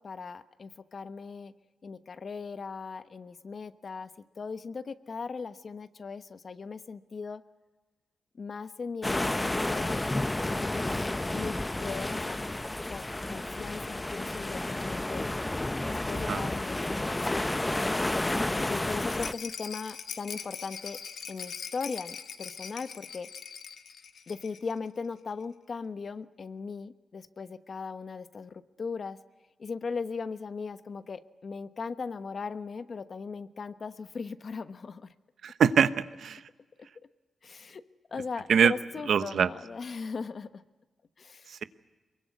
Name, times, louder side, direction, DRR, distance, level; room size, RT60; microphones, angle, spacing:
voice 1, 0.0-1.5 1.8-4.1 4.4-7.4 8.4-10.0 10.4-10.9 11.3-12.4 12.9-15.3 15.9-17.6 18.6-21.0 21.3-23.3 24.3-29.2 29.6-35.1 36.8-36.9 37.4-37.8 38.1-40.6 41.2-41.6, left 5 dB, 50° left, 12 dB, 1.1 m, -38 dB
sound 1, 9.0-19.3, left 1 dB, 15° left, 0.7 m, -31 dB
voice 2, 16.2-16.5 35.4-36.4 38.5-38.7 39.1-39.5 41.5-41.6, right 7 dB, 75° right, 13 dB, 0.9 m, -24 dB
Rattle, 19.1-24.8 25.0-25.1 25.4-25.5, left 7 dB, 75° left, 1.4 m, -42 dB
23.0 x 22.5 x 9.5 m, 1.2 s
cardioid pair, 75°, 0 cm